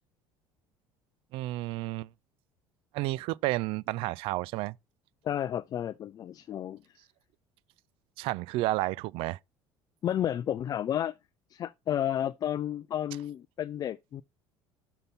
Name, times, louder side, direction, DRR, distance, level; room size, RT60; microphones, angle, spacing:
voice 1, 1.3-2.1 2.9-4.7 8.2-9.4, right 18 dB, 70° right, 0.4 m, -31 dB
voice 2, 5.2-6.8 10.0-11.1 11.5-14.2, left 10 dB, 40° left, 0.4 m, -31 dB
6.7 x 5.7 x 4.0 m
supercardioid pair, 100°, 10 cm